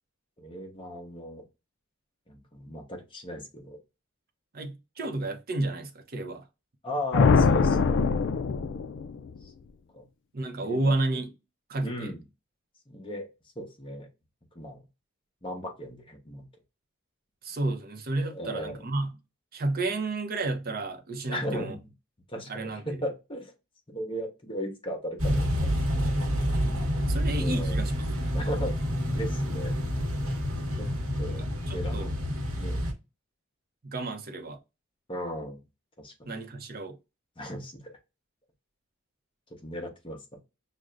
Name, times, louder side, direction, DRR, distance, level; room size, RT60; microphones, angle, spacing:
voice 1, 0.4-1.4 2.3-3.8 6.8-8.1 9.4-9.5 9.9-10.0 10.6-11.0 11.8-12.2 12.9-13.3 13.6-14.1 14.5-14.8 15.4-16.4 18.2-18.8 21.3-21.8 22.3-23.5 23.9-26.1 27.4-27.9 28.3-29.7 30.8-30.9 31.2-31.9 32.5-32.9 35.1-35.6 36.0-36.3 37.4-38.0 39.6-40.2, equal, 25° left, 1.0 m, -36 dB
voice 2, 4.5-6.4 10.3-11.3 11.7-12.1 17.4-19.2 19.5-21.7 22.5-23.0 26.6-28.4 31.3-32.1 33.8-34.6 36.2-37.0, right 2 dB, 45° right, 0.7 m, -32 dB
sound 1, 7.1-9.4, left 5 dB, 60° left, 0.4 m, -23 dB
sound 2, 25.2-32.9, equal, 90° right, 1.1 m, -28 dB
6.2 x 2.1 x 2.5 m
head